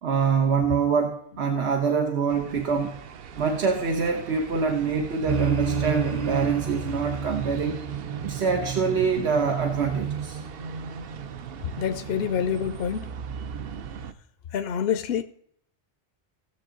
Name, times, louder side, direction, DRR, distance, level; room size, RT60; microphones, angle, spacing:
voice 1, 0.0-3.0 3.4-7.8 8.2-10.4, right 5 dB, 85° right, 1.3 m, -25 dB
sound 1, 2.3-14.1, right 7 dB, 65° right, 0.8 m, -37 dB
sound 2, 5.3-10.9, right 5 dB, 40° right, 1.0 m, -31 dB
voice 2, 11.8-13.1 14.5-15.2, left 8 dB, 70° left, 0.7 m, -27 dB
17.5 x 6.9 x 3.8 m
omnidirectional pair, 1.1 m